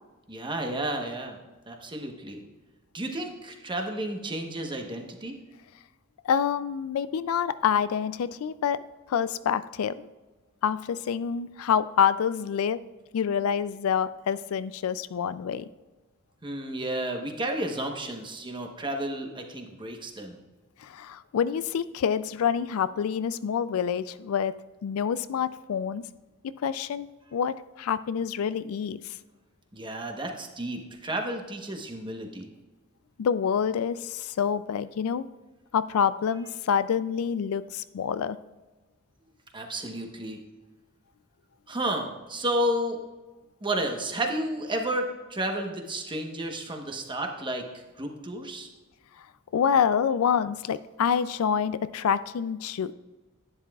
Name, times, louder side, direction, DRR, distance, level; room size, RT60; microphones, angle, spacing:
voice 1, 0.3-1.4 1.7-2.4 2.9-5.3 16.4-20.4 29.7-32.5 39.5-40.4 41.7-43.0 43.6-47.6 48.0-48.7, right 1 dB, 25° right, 3 dB, 1.1 m, -32 dB
voice 2, 6.2-8.8 9.1-10.1 10.6-12.8 13.1-15.7 20.8-24.6 24.8-26.0 26.6-29.1 33.2-35.3 35.7-38.4 49.5-52.9, left 7 dB, 75° left, 15 dB, 0.4 m, -27 dB
11.0 x 9.8 x 2.4 m, 1.2 s
head